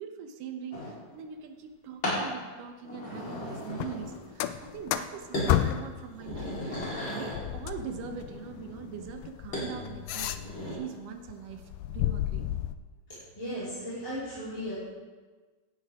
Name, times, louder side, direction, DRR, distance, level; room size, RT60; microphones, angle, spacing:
voice 1, 0.0-12.6, right 7 dB, 70° right, 5 dB, 2.6 m, -42 dB
sound 1, 0.7-1.0 2.0-2.3 2.8-4.3 4.6-5.0 5.3-5.6 6.0-7.5 9.5-9.7 10.2-10.8, equal, 35° left, 4.9 m, -35 dB
sound 2, 3.7-6.0 6.3-10.8 11.2-12.7, left 12 dB, 80° left, 2.0 m, -33 dB
voice 2, 13.3-14.7, equal, 10° left, -12 dB, 4.7 m, -36 dB
17.0 x 13.0 x 3.7 m, 1.4 s
omnidirectional pair, 4.1 m